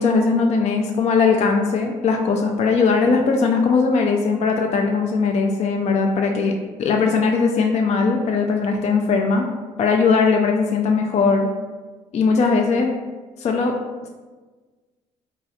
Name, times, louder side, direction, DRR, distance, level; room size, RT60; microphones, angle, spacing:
voice 1, 0.0-6.5 6.8-9.5 9.8-11.5 12.1-12.9 13.4-13.7, left 4 dB, 40° left, 3 dB, 0.4 m, -19 dB
3.1 x 2.6 x 2.7 m, 1.3 s
hypercardioid pair, 50°, 18 cm